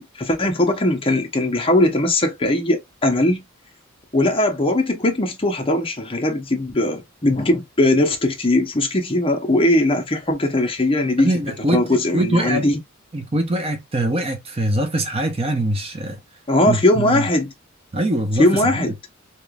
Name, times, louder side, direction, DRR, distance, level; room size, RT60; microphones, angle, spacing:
voice 1, 0.0-3.4 4.1-11.3 11.7-12.8 16.5-17.5 18.4-18.9, left 1 dB, 25° left, 0.7 m, -19 dB
voice 2, 11.2-11.8 12.1-12.7 13.1-16.2 16.7-17.2 17.9-18.5 18.7-18.9, right 1 dB, 30° right, 0.6 m, -22 dB
3.3 x 2.9 x 2.3 m
head